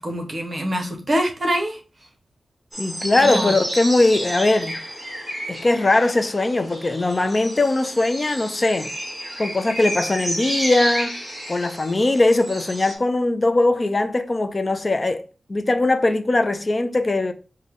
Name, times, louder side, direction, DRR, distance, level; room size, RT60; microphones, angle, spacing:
voice 1, 0.0-1.8 3.2-3.5, equal, 35° right, 0.9 m, -24 dB
sound 1, 2.7-12.9, equal, 10° right, 1.4 m, -31 dB
voice 2, 2.8-4.7 5.5-8.9 9.4-11.2 11.5-15.2 15.5-17.3, left 2 dB, 30° left, 0.3 m, -20 dB
5.1 x 2.1 x 3.5 m
wide cardioid pair, 170°, 0 cm